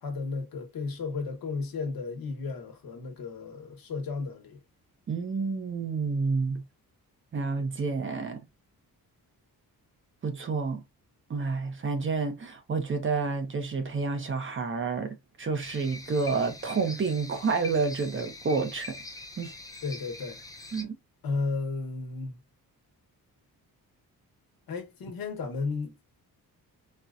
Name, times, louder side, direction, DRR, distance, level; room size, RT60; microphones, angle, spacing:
voice 1, 0.0-4.6 19.8-20.4 21.2-22.4 24.7-25.9, left 4 dB, 70° left, 1.0 m, -33 dB
voice 2, 5.1-6.6 7.3-8.4 10.2-10.8 11.3-19.0 19.4-19.5 20.7-21.0, right 4 dB, 35° right, 0.6 m, -29 dB
sound 1, 15.6-20.8, left 2 dB, 10° left, 0.4 m, -44 dB
4.2 x 2.1 x 2.4 m
wide cardioid pair, 150°, 37 cm